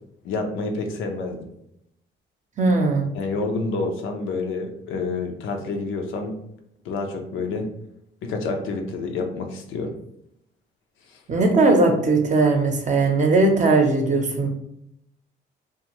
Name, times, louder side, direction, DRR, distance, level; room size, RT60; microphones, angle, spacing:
voice 1, 0.2-1.5 3.1-6.4 6.8-7.7 8.2-9.9 11.1-11.2, left 3 dB, 85° left, 4 dB, 0.6 m, -28 dB
voice 2, 2.6-3.1 11.3-14.5, right 3 dB, 35° right, 3 dB, 0.6 m, -19 dB
2.6 x 2.3 x 2.9 m, 0.77 s
cardioid pair, 90°, 20 cm